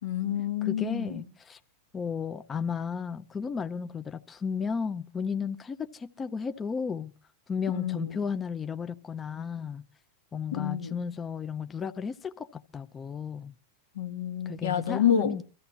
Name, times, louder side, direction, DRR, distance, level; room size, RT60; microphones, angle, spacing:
voice 1, 0.0-1.2 7.7-8.2 10.5-11.0 13.9-15.3, left 9 dB, 85° left, 1.7 m, -28 dB
voice 2, 0.6-1.6 1.9-7.1 7.5-9.8 10.3-13.6 14.5-15.4, left 6 dB, 20° left, 0.6 m, -34 dB
23.0 x 14.0 x 2.9 m
hypercardioid pair, 125°, 0 cm